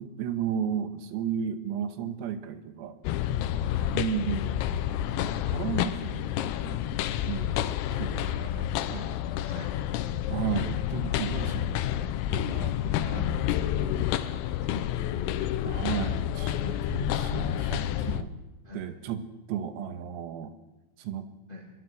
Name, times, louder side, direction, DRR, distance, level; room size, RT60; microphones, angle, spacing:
voice 1, 0.0-3.0 3.9-4.5 5.0-6.8 7.2-9.1 10.3-13.9 15.6-18.3 18.7-20.5 21.0-21.3, right 8 dB, 90° right, 8 dB, 4.1 m, -34 dB
sound 1, 3.1-18.2, left 11 dB, 85° left, 3.6 m, -29 dB
voice 2, 9.4-9.7 14.3-15.3 18.6-18.9 21.5-21.7, left 3 dB, 50° left, 1 dB, 0.6 m, -44 dB
23.5 x 23.0 x 6.4 m, 1.0 s
omnidirectional pair, 5.9 m